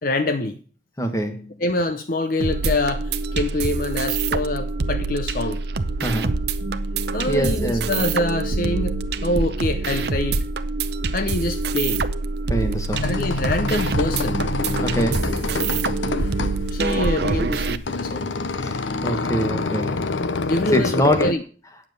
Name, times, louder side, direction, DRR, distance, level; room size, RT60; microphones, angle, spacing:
voice 1, 0.0-0.6 1.6-5.6 7.1-10.4 11.1-12.0 13.0-14.4 16.7-18.3 20.5-21.4, left 2 dB, 45° left, 10 dB, 0.6 m, -25 dB
voice 2, 1.0-1.5 6.0-6.3 7.3-7.9 12.5-13.0 14.8-15.2 18.6-20.1 20.7-21.3, equal, 15° left, 7 dB, 1.3 m, -24 dB
sound 1, 2.4-17.8, right 3 dB, 60° right, 0.6 m, -25 dB
sound 2, 12.6-21.3, left 3 dB, 80° left, 0.7 m, -27 dB
9.4 x 7.3 x 6.6 m, 0.40 s
head